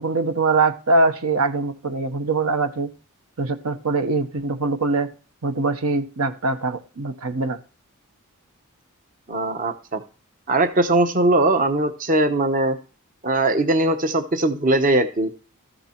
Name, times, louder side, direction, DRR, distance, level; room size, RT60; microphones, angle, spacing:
voice 1, 0.0-2.9 3.4-5.1 5.4-7.6, right 3 dB, 75° right, 7 dB, 1.1 m, -22 dB
voice 2, 9.3-10.0 10.5-12.8 13.2-15.3, right 2 dB, 40° right, 7 dB, 0.9 m, -20 dB
14.0 x 6.7 x 4.4 m, 0.36 s
head